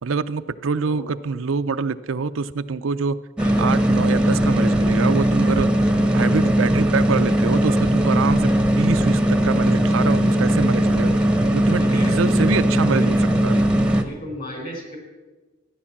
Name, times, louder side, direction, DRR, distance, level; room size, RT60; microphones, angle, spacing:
voice 1, 0.0-3.2 3.6-5.7 6.1-11.1 11.5-13.6, right 5 dB, 90° right, 12 dB, 0.5 m, -25 dB
sound 1, 3.4-14.0, right 1 dB, 5° right, 0.8 m, -19 dB
voice 2, 6.2-6.5 11.8-13.1 13.4-13.6 14.0-15.0, equal, 40° left, 2 dB, 4.1 m, -36 dB
13.5 x 10.5 x 7.2 m, 1.2 s
head